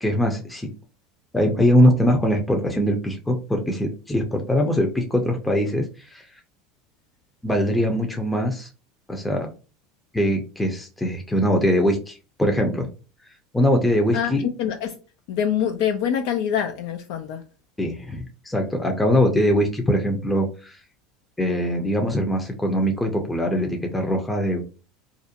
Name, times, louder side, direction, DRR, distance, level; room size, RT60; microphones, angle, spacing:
voice 1, 0.0-0.7 1.3-6.3 7.4-8.7 9.1-9.5 10.1-12.9 13.5-14.4 17.8-20.8 21.4-24.6, equal, 10° left, 0.5 m, -22 dB
voice 2, 14.6-14.9 15.3-17.4, left 8 dB, 65° left, 0.3 m, -25 dB
2.5 x 2.1 x 2.7 m
hypercardioid pair, 90°, 0 cm